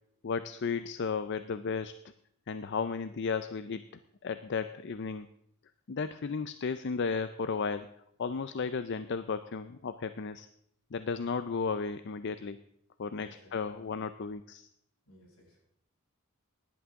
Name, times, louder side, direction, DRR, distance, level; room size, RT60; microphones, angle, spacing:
voice 1, 0.2-2.0 2.5-3.8 4.2-5.3 5.9-7.9 8.2-10.5 10.9-12.6 13.0-14.7, left 5 dB, 50° left, 12 dB, 0.5 m, -34 dB
voice 2, 13.1-13.5 15.1-15.6, equal, 75° left, -3 dB, 6.4 m, -58 dB
17.0 x 11.0 x 3.6 m, 0.72 s
head